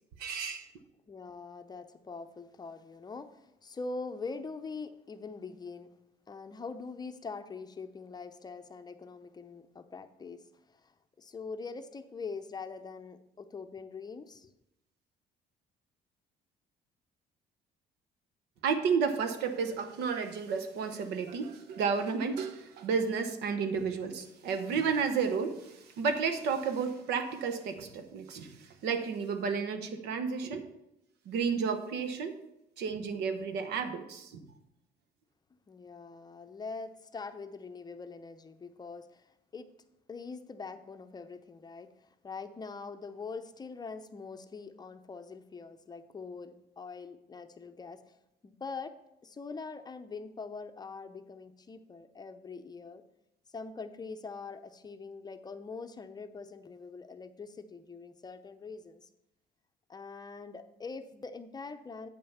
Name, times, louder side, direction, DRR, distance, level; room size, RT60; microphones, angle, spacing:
voice 1, 0.2-0.7 18.6-30.7 31.3-32.4 32.8-34.4, right 5 dB, 80° right, 1.0 m, -32 dB
voice 2, 1.1-5.9 6.3-14.5 35.7-39.7 40.1-48.2 48.4-49.0 49.2-53.0 53.5-59.1 59.9-62.1, left 4 dB, 25° left, 0.6 m, -43 dB
8.6 x 5.5 x 5.6 m
cardioid pair, 110°, 17 cm